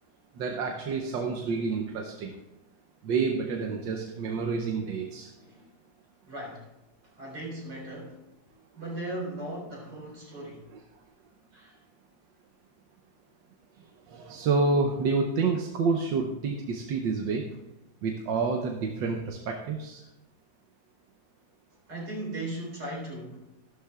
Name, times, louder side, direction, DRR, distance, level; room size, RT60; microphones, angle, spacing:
voice 1, 0.4-2.4 3.0-5.3 10.7-10.8 14.1-17.6 18.0-20.1, right 4 dB, 85° right, 3 dB, 1.6 m, -28 dB
voice 2, 5.3-5.7 6.3-6.7 7.2-10.7 11.5-11.8 21.9-23.5, right 1 dB, 65° right, -3 dB, 4.7 m, -38 dB
15.0 x 12.5 x 2.4 m, 0.94 s
omnidirectional pair, 2.0 m